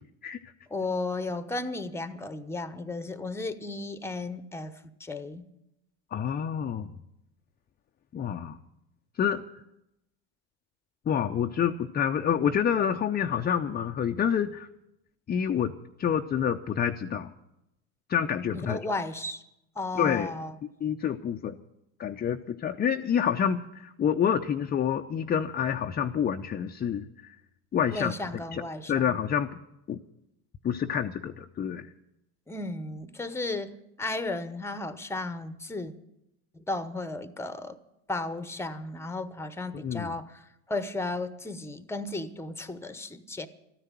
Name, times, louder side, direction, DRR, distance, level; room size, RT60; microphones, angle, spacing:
voice 1, 0.7-4.7 5.0-5.5 18.6-19.4 19.8-20.6 27.9-29.2 32.5-35.9 36.7-37.8 38.1-40.4 40.7-43.5, left 2 dB, 5° left, 0.9 m, -34 dB
voice 2, 6.1-6.9 8.1-8.6 9.2-9.4 11.1-14.7 15.3-17.3 18.1-18.8 20.0-20.3 20.8-21.6 22.0-27.3 27.7-28.1 28.5-28.6 28.9-29.5 29.9-30.0 30.6-31.9 39.8-40.2, left 8 dB, 25° left, 0.6 m, -28 dB
13.5 x 10.0 x 9.0 m
hypercardioid pair, 85°, 41 cm